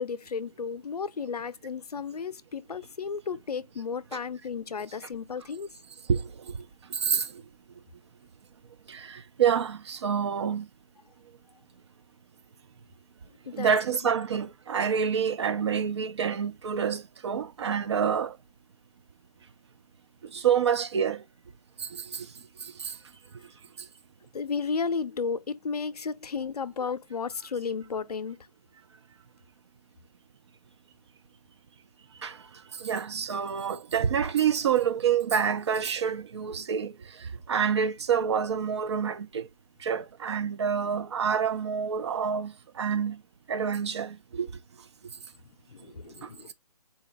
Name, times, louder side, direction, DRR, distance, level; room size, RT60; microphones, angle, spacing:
voice 1, 0.0-5.7 13.5-13.7 24.3-28.5 45.7-46.5, left 5 dB, 90° left, 0.5 m, -33 dB
voice 2, 6.1-6.5 6.9-7.3 8.9-10.7 13.5-18.4 20.3-21.2 21.8-22.3 22.6-22.9 32.2-32.4 32.8-39.5 39.8-43.2 43.5-44.5 46.2-46.3, right 7 dB, 45° right, 0.5 m, -27 dB
4.1 x 2.3 x 3.3 m
hypercardioid pair, 150°, 19 cm